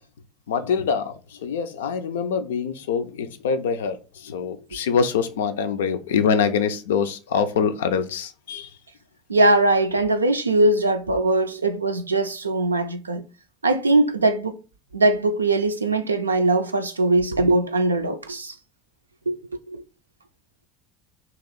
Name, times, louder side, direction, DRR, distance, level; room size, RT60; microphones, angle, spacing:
voice 1, 0.5-8.7, left 6 dB, 70° left, 0.4 m, -24 dB
voice 2, 9.3-13.2 13.6-14.6 14.9-18.5 19.3-19.4 19.7-19.8, right 2 dB, 80° right, 0.4 m, -21 dB
2.9 x 2.9 x 4.0 m
figure-of-eight pair, 70°, 0 cm